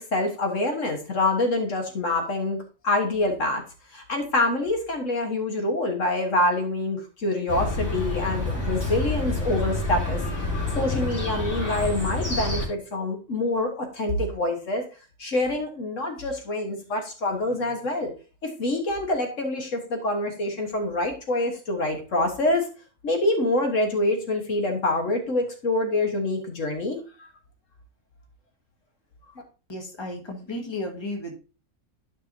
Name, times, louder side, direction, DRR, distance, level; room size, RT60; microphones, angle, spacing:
voice 1, 0.0-3.6 3.9-10.2 10.7-14.8 15.2-18.1 18.4-22.7 23.0-27.3, left 2 dB, 70° left, 3 dB, 1.8 m, -26 dB
Chirp tweet, 7.5-12.7, left 2 dB, 90° left, 3.7 m, -28 dB
voice 2, 29.7-31.4, left 1 dB, 20° left, 2 dB, 1.6 m, -33 dB
12.5 x 5.5 x 2.7 m, 0.33 s
omnidirectional pair, 1.4 m